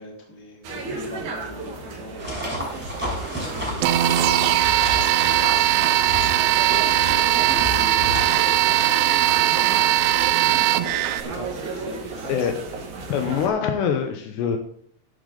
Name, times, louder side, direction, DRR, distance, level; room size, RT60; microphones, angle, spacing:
voice 1, 0.0-8.4 8.7-9.0 9.4-11.5 11.7-12.5, equal, 30° right, -2 dB, 1.4 m, -42 dB
sound 1, 0.6-13.5, right 3 dB, 50° right, 2.6 m, -34 dB
sound 2, 2.2-9.0, equal, ahead, 5.7 m, -32 dB
sound 3, 3.8-11.2, right 14 dB, 85° right, 2.5 m, -19 dB
voice 2, 13.1-14.6, left 7 dB, 75° left, 6 dB, 2.7 m, -24 dB
12.0 x 11.5 x 3.9 m, 0.62 s
omnidirectional pair, 5.8 m